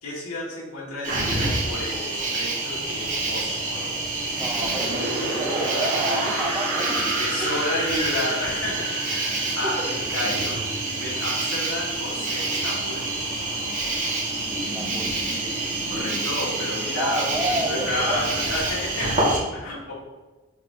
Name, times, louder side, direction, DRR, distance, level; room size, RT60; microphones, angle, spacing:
voice 1, 0.0-4.0 7.2-10.6 10.9-13.0 15.9-19.9, left 1 dB, 85° left, -5 dB, 2.1 m, -31 dB
Cricket, 1.0-19.4, right 2 dB, 35° right, 2.0 m, -27 dB
voice 2, 4.3-7.5 9.6-9.9 14.7-15.2 16.9-18.5, right 1 dB, 15° right, 1 dB, 0.8 m, -30 dB
sound 1, 4.3-11.2, right 1 dB, 80° right, 2.0 m, -31 dB
7.1 x 5.4 x 2.9 m, 1.2 s
head